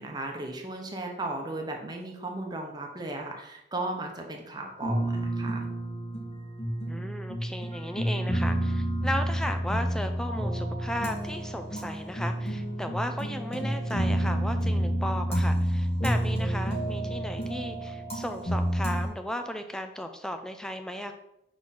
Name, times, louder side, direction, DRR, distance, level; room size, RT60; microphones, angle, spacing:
voice 1, 0.0-5.7, right 2 dB, 25° right, 1 dB, 0.9 m, -36 dB
sound 1, 4.8-19.1, right 1 dB, 35° left, 1.5 m, -29 dB
voice 2, 6.9-21.1, equal, 5° left, 7 dB, 0.4 m, -35 dB
6.1 x 3.8 x 4.2 m, 0.82 s
head